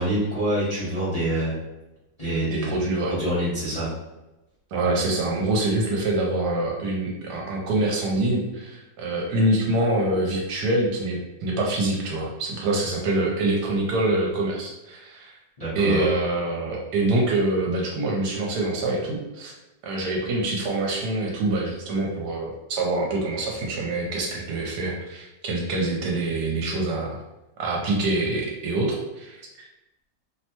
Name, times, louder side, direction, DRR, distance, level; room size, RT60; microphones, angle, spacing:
voice 1, 0.0-1.6 2.2-2.7 3.1-3.9 15.6-16.0, right 1 dB, 30° left, -11 dB, 0.8 m, -26 dB
voice 2, 2.5-3.1 4.7-15.3 15.7-19.5 19.8-27.2 27.6-29.7, right 2 dB, 75° right, -1 dB, 1.2 m, -25 dB
3.0 x 2.1 x 2.9 m, 1.0 s
omnidirectional pair, 1.9 m